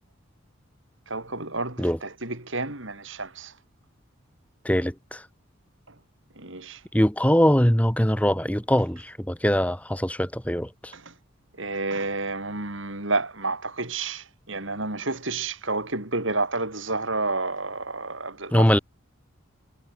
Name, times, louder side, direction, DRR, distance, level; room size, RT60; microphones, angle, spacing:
voice 1, 1.1-3.5 6.4-6.8 10.9-11.1 11.6-18.7, right 3 dB, 65° right, 4.5 m, -30 dB
voice 2, 4.6-5.2 6.9-10.9 18.5-18.8, equal, 5° left, 2.0 m, -22 dB
head